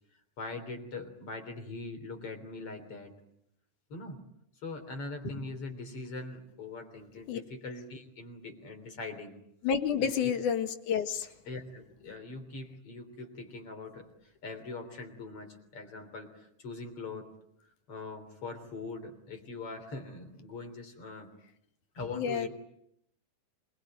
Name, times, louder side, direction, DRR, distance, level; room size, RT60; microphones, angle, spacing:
voice 1, 0.4-3.1 3.9-4.2 4.6-9.3 10.0-10.3 11.5-17.3 17.9-21.3 21.9-22.5, left 3 dB, 45° left, 5 dB, 4.3 m, -42 dB
voice 2, 9.6-11.3 22.2-22.5, left 7 dB, 75° left, 7 dB, 3.2 m, -29 dB
26.5 x 21.0 x 9.3 m, 0.77 s
omnidirectional pair, 3.6 m